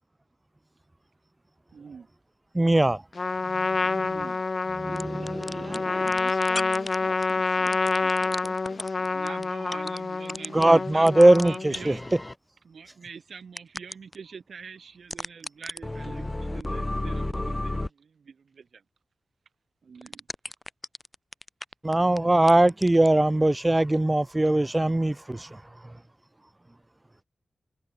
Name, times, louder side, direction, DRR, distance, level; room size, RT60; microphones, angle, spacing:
voice 1, 1.7-2.1 3.8-4.4 9.1-12.0 12.6-18.8 19.8-20.3, right 6 dB, 70° right, 3.7 m, -44 dB
voice 2, 2.5-3.0 4.8-5.7 10.5-11.9 21.8-25.6, right 1 dB, 15° right, 0.5 m, -21 dB
Trumpet, 3.2-11.8, left 4 dB, 40° left, 2.1 m, -28 dB
sound 1, 5.0-5.8 6.1-6.9 7.2-7.3 7.7-10.0 10.3-10.6 11.1-12.3 13.6-14.2 15.1-17.9 20.0-22.2 22.5-23.1, left 2 dB, 15° left, 1.6 m, -32 dB
voice 3, 5.6-9.1, right 3 dB, 35° right, 3.2 m, -45 dB
wide cardioid pair, 120°, 0 cm